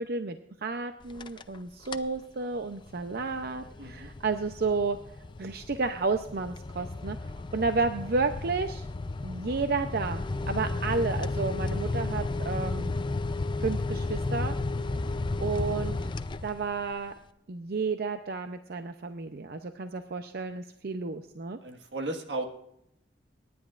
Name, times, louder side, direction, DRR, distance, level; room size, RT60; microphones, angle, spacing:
voice 1, 0.0-5.0 5.4-8.9 9.2-12.9 13.6-14.6 15.4-16.1 16.4-17.1 17.5-21.6, right 4 dB, 60° right, 8 dB, 0.6 m, -31 dB
sound 1, 1.0-1.6 1.8-2.2 2.6-16.9, left 2 dB, 25° left, 0.4 m, -33 dB
voice 2, 3.8-4.1 15.0-15.2 21.6-22.4, right 2 dB, 85° right, 5 dB, 1.6 m, -35 dB
27.0 x 10.5 x 2.5 m, 0.78 s
head